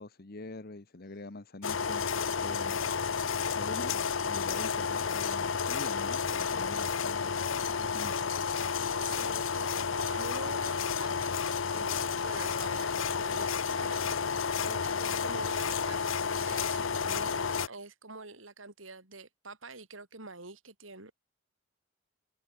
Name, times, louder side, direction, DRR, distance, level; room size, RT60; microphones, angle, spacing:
voice 1, 0.0-2.8 3.5-7.5 7.8-8.2, left 2 dB, 50° left, 1.2 m, -45 dB
sound 1, 1.6-17.7, left 6 dB, 85° left, 0.8 m, -31 dB
voice 2, 8.9-11.4 11.7-21.1, right 3 dB, 90° right, 7.3 m, -46 dB
head